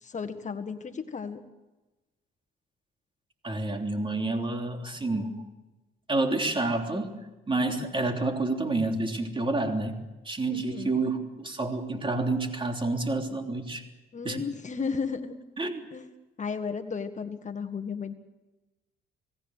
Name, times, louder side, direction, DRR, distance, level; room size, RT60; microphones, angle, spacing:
voice 1, 0.0-1.4 10.5-11.0 14.1-15.4 15.9-16.0 16.4-18.1, left 5 dB, 35° left, 8 dB, 1.7 m, -34 dB
voice 2, 3.4-5.4 6.1-7.1 7.5-10.0 10.3-13.8 14.2-14.4 15.6-15.8, right 2 dB, 25° right, 4 dB, 3.3 m, -29 dB
27.5 x 18.5 x 6.5 m, 1.1 s
cardioid pair, 90°, 20 cm